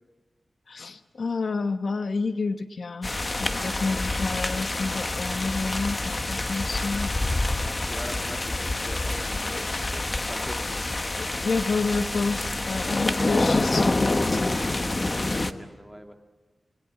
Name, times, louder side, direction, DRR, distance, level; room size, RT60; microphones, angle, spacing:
voice 1, 0.7-3.1 3.4-7.1 11.2-14.1, left 4 dB, 70° left, 9 dB, 1.0 m, -29 dB
sound 1, 3.0-15.5, left 2 dB, 30° left, 1.2 m, -27 dB
voice 2, 3.9-4.3 7.6-10.9 14.6-16.1, equal, ahead, 4 dB, 2.7 m, -43 dB
29.0 x 21.0 x 9.1 m, 1.2 s
wide cardioid pair, 105°, 0 cm